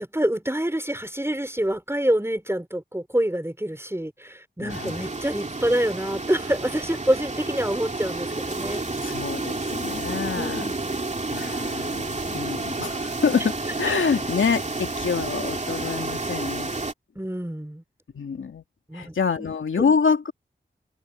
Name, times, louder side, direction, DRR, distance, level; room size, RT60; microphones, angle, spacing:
voice 1, 0.0-8.8 10.4-10.7 17.2-17.8 18.9-19.5, right 1 dB, 10° right, 5.2 m, -26 dB
voice 2, 4.6-5.0 9.0-10.7 11.3-16.7 18.1-18.6 18.9-20.3, left 5 dB, 80° left, 2.4 m, -26 dB
sound 1, 4.7-16.9, right 3 dB, 35° right, 2.5 m, -30 dB
cardioid pair, 40°, 20 cm